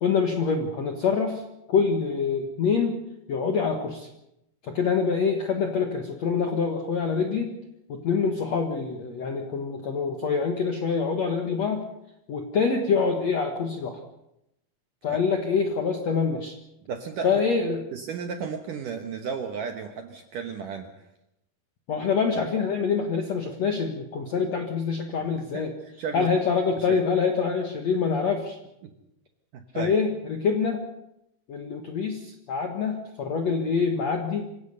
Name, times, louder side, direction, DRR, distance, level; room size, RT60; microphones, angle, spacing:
voice 1, 0.0-1.4 1.7-3.0 3.3-4.1 4.6-7.5 7.9-11.8 12.3-14.0 15.0-16.5 17.2-17.8 21.9-25.7 26.1-28.6 29.7-30.8 31.5-34.4, left 5 dB, 65° left, 4 dB, 1.7 m, -25 dB
voice 2, 16.9-17.3 17.9-21.1 25.4-25.6 26.0-26.3 26.8-27.0 28.8-28.9 29.5-29.9, right 6 dB, 70° right, 6 dB, 2.1 m, -34 dB
25.0 x 16.5 x 6.8 m, 0.85 s
omnidirectional pair, 5.2 m